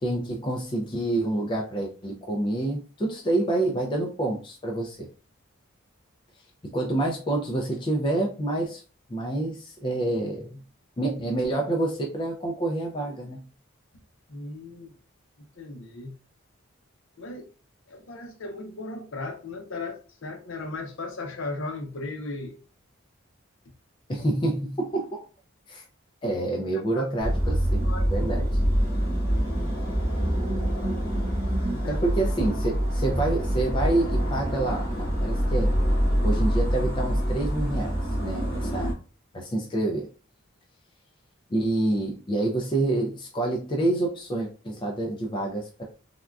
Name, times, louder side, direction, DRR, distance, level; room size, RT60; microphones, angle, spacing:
voice 1, 0.0-5.1 6.6-8.8 9.1-10.6 11.0-13.4 24.1-25.2 25.7-25.8 26.2-27.8 28.1-28.5 31.9-35.7 36.2-39.0 39.3-40.1 41.5-45.8, right 2 dB, 20° left, 0 dB, 0.3 m, -27 dB
voice 2, 14.3-14.9 15.6-16.1 17.2-17.5 17.9-22.6 24.1-24.2 26.3-26.4 26.7-27.1 27.8-28.3 29.3-29.5 31.7-32.0, left 2 dB, 65° left, 4 dB, 0.6 m, -37 dB
sound 1, 27.2-38.9, equal, 45° left, 1.5 m, -25 dB
3.5 x 2.3 x 2.3 m, 0.36 s
head